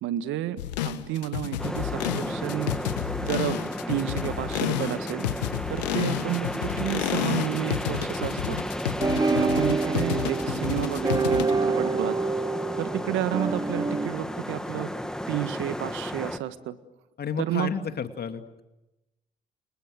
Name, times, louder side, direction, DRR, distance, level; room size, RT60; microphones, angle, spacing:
voice 1, 0.0-2.7 3.2-3.6 3.9-5.3 5.7-8.6 9.1-12.2 12.8-14.9 15.3-16.8 17.5-17.7, right 13 dB, 65° right, 13 dB, 1.6 m, -31 dB
sound 1, 0.6-11.5, left 12 dB, 80° left, 1.3 m, -30 dB
sound 2, 1.6-16.4, equal, 5° left, 2.4 m, -33 dB
sound 3, 9.0-14.1, right 4 dB, 20° right, 1.1 m, -27 dB
voice 2, 17.2-18.6, left 7 dB, 50° left, 8 dB, 2.6 m, -32 dB
30.0 x 28.5 x 6.6 m, 1.0 s
figure-of-eight pair, 45°, 21 cm